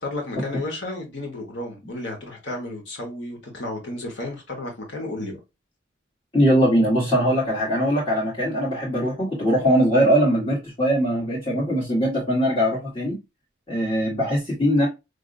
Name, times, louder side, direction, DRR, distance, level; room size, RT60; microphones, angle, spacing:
voice 1, 0.0-5.4, left 2 dB, 60° left, 1.3 m, -32 dB
voice 2, 6.3-13.2 13.7-14.9, equal, 25° left, 1.4 m, -21 dB
5.0 x 2.7 x 2.5 m
head